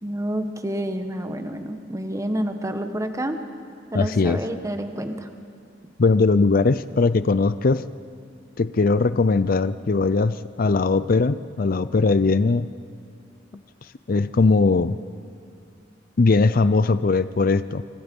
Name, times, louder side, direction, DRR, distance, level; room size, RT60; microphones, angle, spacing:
voice 1, 0.0-3.4 3.9-5.3, right 1 dB, 15° right, 7 dB, 1.3 m, -28 dB
voice 2, 3.9-4.4 6.0-7.8 8.6-12.7 14.1-15.0 16.2-17.8, left 3 dB, 50° left, 14 dB, 0.5 m, -20 dB
28.0 x 25.0 x 5.4 m, 2.4 s
head